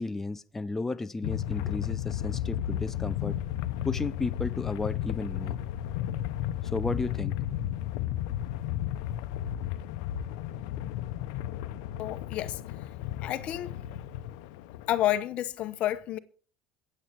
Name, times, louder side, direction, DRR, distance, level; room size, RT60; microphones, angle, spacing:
voice 1, 0.0-3.4 3.8-5.6 6.7-7.4, left 3 dB, 15° left, 0.6 m, -33 dB
sound 1, 1.2-15.2, left 12 dB, 85° left, 0.8 m, -33 dB
voice 2, 12.0-12.6 13.2-13.7 14.9-16.2, left 13 dB, 55° left, 0.9 m, -30 dB
22.0 x 7.9 x 4.5 m
supercardioid pair, 105°, 2 cm